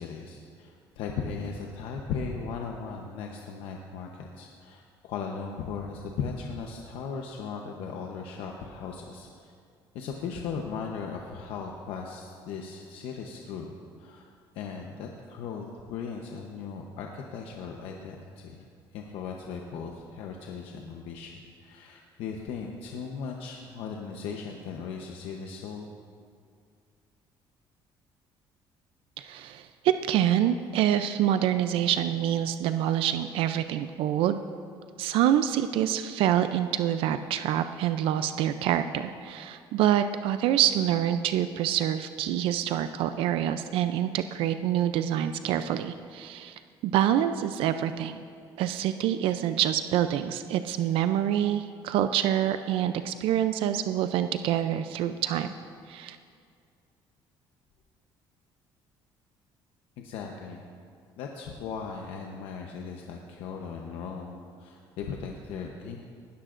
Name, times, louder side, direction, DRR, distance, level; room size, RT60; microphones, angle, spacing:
voice 1, 0.0-9.5 9.9-14.3 14.5-18.6 18.9-25.9 60.0-60.7 61.2-66.0, left 5 dB, 85° left, 1 dB, 0.9 m, -37 dB
voice 2, 29.2-34.4 35.0-48.2 48.6-55.5 55.9-56.2, right 11 dB, 75° right, 10 dB, 0.5 m, -26 dB
19.0 x 13.0 x 2.6 m, 2.3 s
cardioid pair, 140°, 9 cm